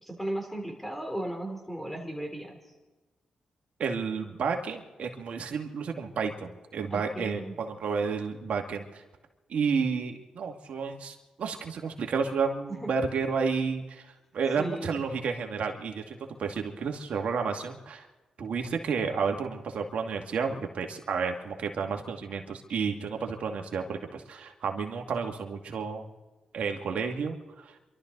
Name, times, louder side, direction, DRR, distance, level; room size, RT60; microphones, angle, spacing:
voice 1, 0.0-2.6 6.9-7.6 12.7-12.9 14.6-15.0, right 1 dB, 5° left, 2 dB, 3.7 m, -36 dB
voice 2, 3.8-9.0 9.5-14.1 14.3-18.1 18.4-26.1 26.5-27.7, right 5 dB, 70° right, 3 dB, 2.2 m, -31 dB
27.5 x 12.5 x 4.0 m, 1.2 s
supercardioid pair, 55°, 2 cm